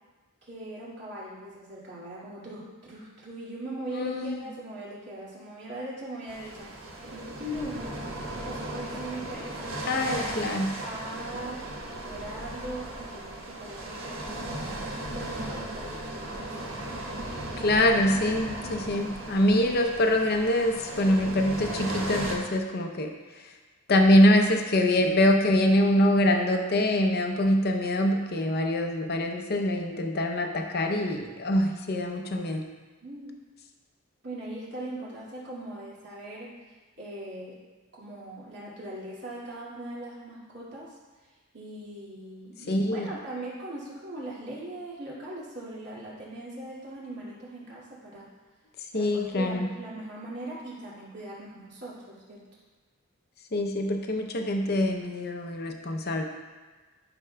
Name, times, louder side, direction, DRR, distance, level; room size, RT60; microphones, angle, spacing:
voice 1, 0.4-11.6 12.0-16.8 33.0-33.3 34.2-36.5 37.0-37.6 37.9-41.0 41.5-48.3 48.9-52.4, right 1 dB, 55° right, -7 dB, 2.2 m, -40 dB
voice 2, 3.9-4.4 9.9-10.7 17.6-23.1 23.9-32.6 42.7-43.1 48.9-49.7 53.5-56.2, left 1 dB, 50° left, 4 dB, 0.7 m, -24 dB
sound 1, 6.3-22.4, right 1 dB, 75° right, 1.3 m, -37 dB
11.0 x 6.0 x 2.3 m, 1.3 s
head